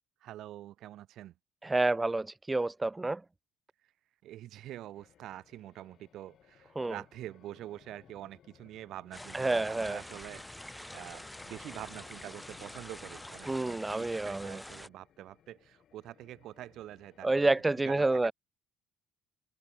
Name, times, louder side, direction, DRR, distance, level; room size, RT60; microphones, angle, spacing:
voice 1, 0.2-1.3 4.2-17.3 17.8-18.3, right 13 dB, 65° right, 1.2 m, -46 dB
voice 2, 1.6-3.2 6.8-7.0 9.3-10.0 13.5-14.6 17.2-18.3, right 2 dB, 20° right, 0.4 m, -29 dB
sound 1, 4.9-17.7, left 10 dB, 55° left, 3.4 m, -61 dB
sound 2, 9.1-14.9, left 1 dB, 5° left, 1.2 m, -46 dB
open air
hypercardioid pair, 60°, 0 cm